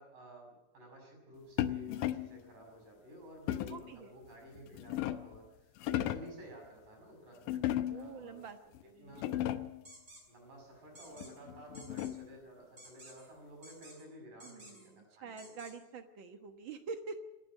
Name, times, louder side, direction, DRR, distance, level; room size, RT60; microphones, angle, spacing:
voice 1, 0.0-8.4 9.0-9.3 10.3-15.5, right 1 dB, 75° right, 2 dB, 7.9 m, -53 dB
sound 1, 1.6-2.4 3.5-3.9 4.5-5.4 5.8-6.4 7.5-8.2 8.7-8.8 9.1-9.8 11.2-12.4, left 12 dB, 80° left, 2.4 m, -36 dB
voice 2, 3.5-4.1 7.9-8.6 8.8-9.4 14.4-17.2, right 5 dB, 55° right, 7 dB, 1.4 m, -46 dB
sound 2, 9.8-10.2 10.9-11.3 11.7-12.1 12.8-13.3 13.6-14.0 14.4-14.9 15.4-15.7, right 1 dB, 25° right, 4.9 m, -54 dB
26.0 x 10.0 x 9.9 m, 0.97 s
omnidirectional pair, 3.8 m